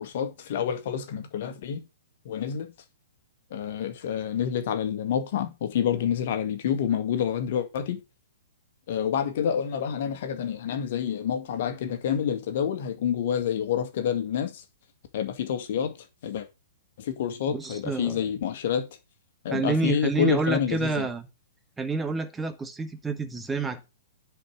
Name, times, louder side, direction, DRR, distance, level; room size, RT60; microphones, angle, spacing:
voice 1, 0.0-1.8 2.3-2.7 3.5-8.0 8.9-14.6 15.1-16.0 16.2-16.5 17.0-18.9 19.4-20.9, left 8 dB, 50° left, 2.0 m, -28 dB
voice 2, 17.5-18.3 19.5-21.3 21.8-23.9, right 3 dB, 10° right, 1.3 m, -28 dB
10.0 x 4.9 x 6.7 m
figure-of-eight pair, 115°, 0 cm